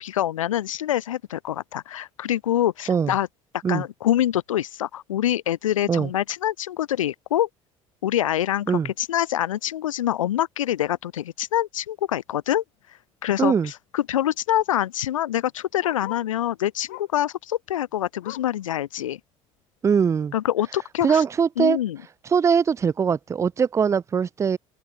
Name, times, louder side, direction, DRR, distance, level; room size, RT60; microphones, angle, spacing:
voice 1, 0.0-3.3 3.7-7.5 8.0-12.6 13.2-19.2 20.3-21.2 21.6-22.0, left 12 dB, 75° left, 0.5 m, -25 dB
Bark, 12.7-12.9 13.2-13.3 13.5-16.4 16.8-17.3 17.6-18.6 19.1-19.2 19.6-19.7 20.4-20.5, left 25 dB, 60° left, 4.3 m, -44 dB
voice 2, 13.4-13.7 19.8-20.3 21.0-21.8 22.3-24.6, right 6 dB, 15° right, 0.3 m, -21 dB
figure-of-eight pair, 60°, 17 cm